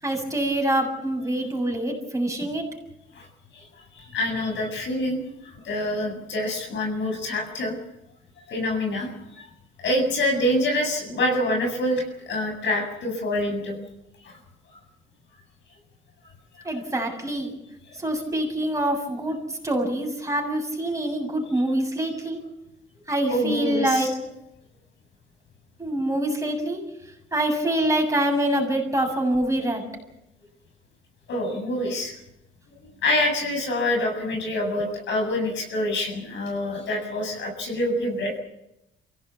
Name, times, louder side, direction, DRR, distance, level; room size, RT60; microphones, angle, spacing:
voice 1, 0.0-2.7 16.6-17.5 17.9-22.4 23.1-24.1 25.8-26.8 27.3-29.8, right 1 dB, 15° right, 1 dB, 7.4 m, -25 dB
voice 2, 3.9-7.7 8.5-9.5 9.8-13.8 14.2-14.4 16.5-16.7 23.3-24.1 31.3-32.2 32.8-38.4, left 1 dB, 65° left, 3 dB, 7.7 m, -26 dB
24.5 x 17.0 x 8.4 m, 0.88 s
cardioid pair, 90°, 20 cm